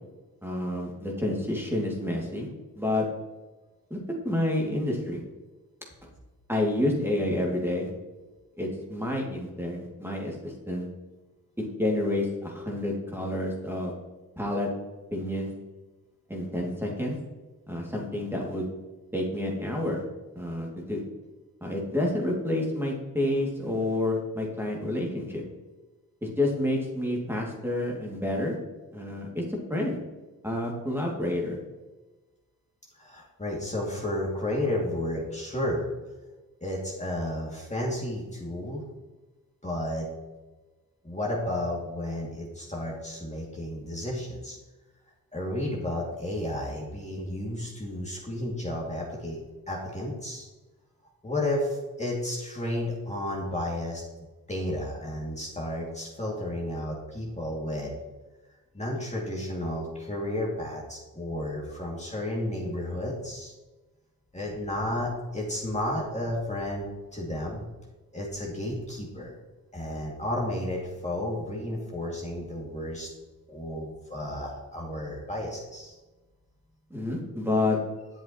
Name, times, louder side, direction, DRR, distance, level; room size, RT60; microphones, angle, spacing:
voice 1, 0.4-2.5 2.8-3.0 3.9-4.0 4.2-5.2 6.5-7.9 8.6-10.9 11.6-13.9 14.4-14.7 15.1-15.5 16.3-17.2 17.7-18.7 19.1-20.0 20.4-21.0 21.6-25.4 26.2-28.6 28.9-29.4 29.7-30.0 30.4-31.6 76.9-77.8, left 1 dB, 5° right, -1 dB, 2.3 m, -29 dB
voice 2, 33.0-35.9 36.6-38.8 39.6-40.1 41.0-44.6 45.3-49.4 49.7-50.5 51.2-54.0 54.5-58.0 58.7-63.5 64.3-67.6 68.1-69.4 69.7-73.1 73.5-76.0, left 1 dB, 20° left, -4 dB, 2.2 m, -32 dB
8.0 x 7.5 x 3.0 m, 1.2 s
cardioid pair, 55°, 36 cm